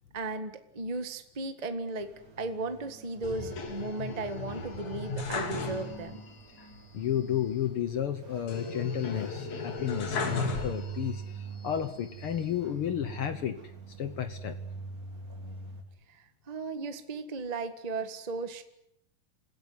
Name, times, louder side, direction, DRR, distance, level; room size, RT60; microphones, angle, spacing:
voice 1, 0.1-2.1 2.4-6.2 16.5-18.6, right 3 dB, 70° right, 8 dB, 0.3 m, -35 dB
sound 1, 2.0-15.8, right 5 dB, 30° right, 2.3 m, -45 dB
sound 2, 3.2-6.3 6.6-6.7 8.5-11.2 11.8-12.6, left 4 dB, 55° left, 3.9 m, -36 dB
voice 2, 6.9-11.2 11.6-13.6 14.0-14.6, left 10 dB, 75° left, 10 dB, 1.2 m, -32 dB
27.5 x 16.0 x 9.6 m, 0.79 s
omnidirectional pair, 4.0 m